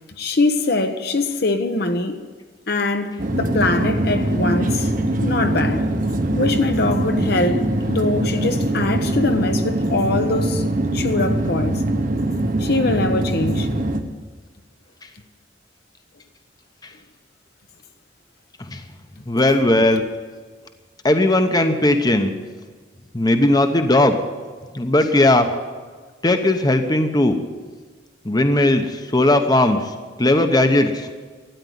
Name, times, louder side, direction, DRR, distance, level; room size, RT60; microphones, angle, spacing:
voice 1, 0.2-2.2 2.7-4.9 5.2-5.9 6.4-11.8 12.6-13.9, left 2 dB, 60° left, 1.0 m, -22 dB
sound 1, 3.2-14.0, right 1 dB, 50° right, 1.1 m, -22 dB
voice 2, 19.3-20.0 21.0-22.3 23.1-24.2 24.7-25.5 26.2-27.4 28.2-29.8 30.2-31.1, left 1 dB, 20° left, 0.9 m, -17 dB
13.5 x 9.6 x 9.5 m
head